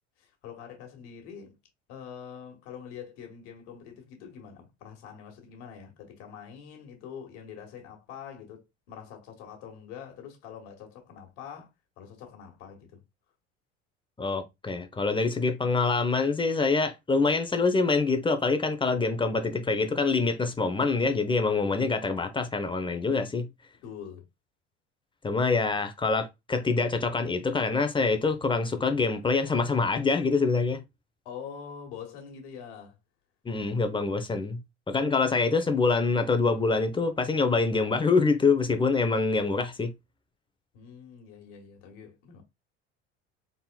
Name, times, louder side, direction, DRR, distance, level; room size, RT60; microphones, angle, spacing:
voice 1, 0.2-1.6 1.9-11.7 12.0-13.0 23.8-24.2 31.2-33.0 40.7-42.4, left 7 dB, 65° left, 1.7 m, -44 dB
voice 2, 14.2-23.5 25.2-30.8 33.4-34.6 34.9-39.9, left 4 dB, 15° left, 0.8 m, -25 dB
4.1 x 3.8 x 2.3 m
hypercardioid pair, 70°, 35 cm